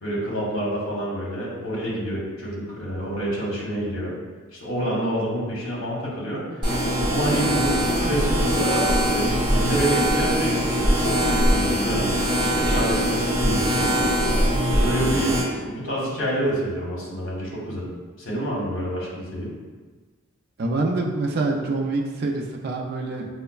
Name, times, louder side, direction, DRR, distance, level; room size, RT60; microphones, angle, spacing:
voice 1, 0.0-4.1 4.5-6.6 7.1-12.2 12.4-17.9 18.2-19.5, equal, 60° left, -5 dB, 1.0 m, -28 dB
sound 1, 6.6-15.4, equal, 20° right, 1.0 m, -22 dB
voice 2, 20.6-23.3, right 2 dB, 45° right, 0 dB, 0.4 m, -26 dB
5.0 x 2.1 x 2.3 m, 1.4 s
head